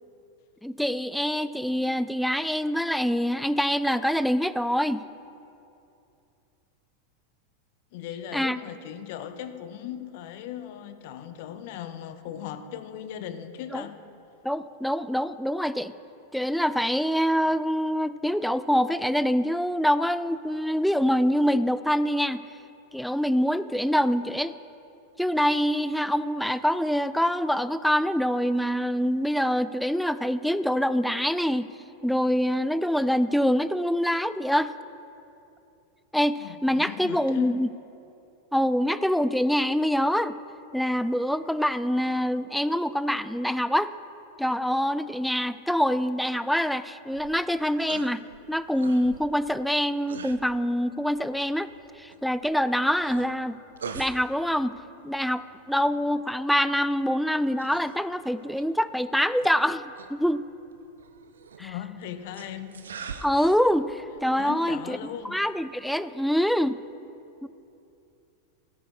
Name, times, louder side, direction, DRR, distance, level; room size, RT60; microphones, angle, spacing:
voice 1, 0.6-5.0 8.3-8.6 13.7-13.8 14.4-15.9 16.3-22.4 22.9-24.5 25.2-31.7 32.0-34.7 36.1-37.7 38.5-40.4 40.7-43.9 44.4-48.2 48.5-51.7 52.0-53.6 53.9-54.8 55.0-60.5 61.6-61.7 63.2-65.0 65.2-66.8 67.4-67.5, equal, ahead, 14 dB, 0.3 m, -25 dB
voice 2, 7.9-14.0 36.4-37.6 61.6-62.8 64.4-65.4, left 10 dB, 50° left, 10 dB, 0.7 m, -38 dB
sound 1, 47.0-65.8, right 6 dB, 65° right, 0.6 m, -46 dB
17.5 x 13.5 x 2.4 m, 2.7 s
figure-of-eight pair, 90°, 0 cm